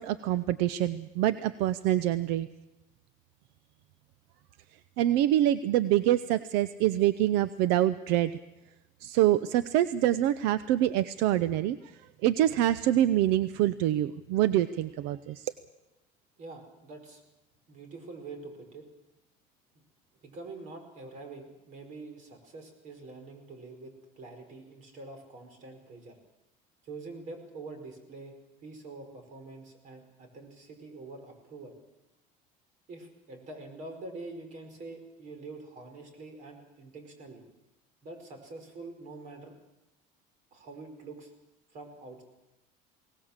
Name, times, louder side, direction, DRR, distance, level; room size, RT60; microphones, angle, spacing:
voice 1, 0.0-2.5 5.0-8.3 9.0-11.8 12.2-15.5, right 13 dB, 75° right, 14 dB, 0.7 m, -25 dB
voice 2, 16.4-17.2 17.7-18.9 20.2-26.2 26.8-28.4 28.6-31.7 32.9-37.4 38.0-39.5 40.5-41.3 41.7-42.2, right 3 dB, 45° right, 6 dB, 5.0 m, -45 dB
21.5 x 18.5 x 7.3 m, 0.99 s
cardioid pair, 150°, 17 cm